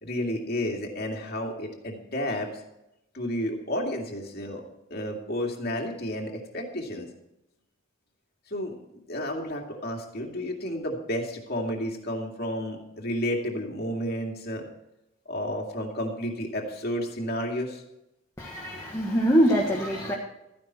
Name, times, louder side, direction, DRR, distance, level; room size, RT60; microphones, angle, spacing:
voice 1, 0.0-2.6 3.1-4.6 4.9-7.1 8.5-8.7 9.1-14.6 15.3-17.8, equal, 45° left, 1 dB, 2.4 m, -31 dB
voice 2, 18.4-20.1, equal, 15° left, -3 dB, 1.5 m, -23 dB
14.0 x 10.5 x 4.4 m, 0.87 s
head